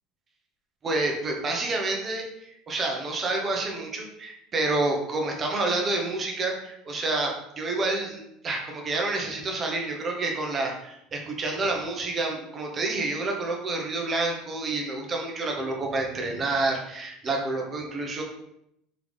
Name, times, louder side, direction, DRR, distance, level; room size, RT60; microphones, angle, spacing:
voice 1, 0.8-18.2, right 2 dB, 25° right, 1 dB, 0.8 m, -28 dB
3.8 x 3.4 x 3.2 m, 0.78 s
cardioid pair, 145°, 0 cm